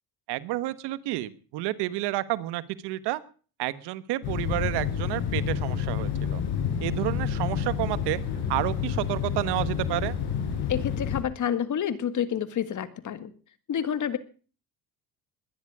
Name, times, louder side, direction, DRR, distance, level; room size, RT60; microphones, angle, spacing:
voice 1, 0.3-3.2 3.6-6.4 6.8-8.2 8.5-10.2, right 16 dB, 80° right, 15 dB, 1.4 m, -30 dB
sound 1, 4.2-11.2, left 7 dB, 70° left, 7.0 m, -29 dB
voice 2, 10.7-13.3 13.7-14.2, left 9 dB, 45° left, 13 dB, 1.9 m, -29 dB
21.0 x 11.0 x 4.9 m, 0.39 s
cardioid pair, 105°, 40 cm